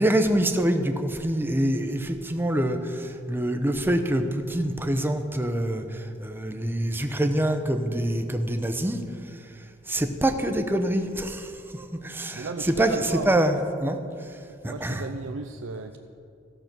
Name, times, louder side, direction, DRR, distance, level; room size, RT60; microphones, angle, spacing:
voice 1, 0.0-9.0 9.9-14.0 14.6-15.1, right 1 dB, 10° right, 7 dB, 0.7 m, -25 dB
voice 2, 12.3-13.3 14.7-16.0, right 3 dB, 70° right, 5 dB, 0.5 m, -34 dB
14.5 x 6.7 x 6.0 m, 2.5 s
head